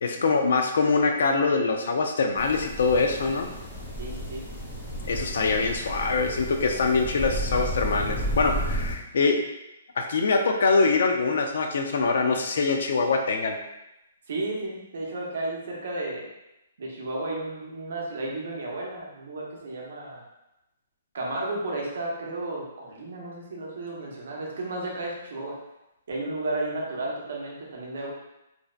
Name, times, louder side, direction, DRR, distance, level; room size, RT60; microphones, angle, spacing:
voice 1, 0.0-3.5 5.1-9.4 10.0-13.6, left 4 dB, 65° left, 4 dB, 0.3 m, -24 dB
sound 1, 2.4-8.9, equal, 15° left, 0.7 m, -32 dB
voice 2, 4.0-4.4 14.3-16.2 16.8-20.2 21.1-25.6 26.1-28.1, right 2 dB, 65° right, -2 dB, 0.7 m, -33 dB
2.6 x 2.1 x 2.3 m, 0.91 s
hypercardioid pair, 170°, 0 cm